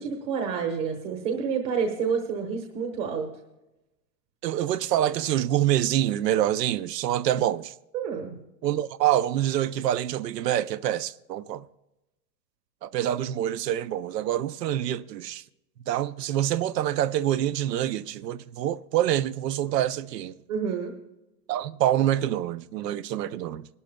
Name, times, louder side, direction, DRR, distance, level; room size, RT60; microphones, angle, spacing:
voice 1, 0.0-3.3 7.9-8.4 20.5-20.9, right 6 dB, 35° right, 1.3 m, -29 dB
voice 2, 4.4-7.7 8.6-11.6 12.8-15.4 15.9-20.4 21.5-23.7, right 12 dB, 85° right, 0.7 m, -26 dB
23.0 x 12.5 x 2.2 m
supercardioid pair, 150°, 48 cm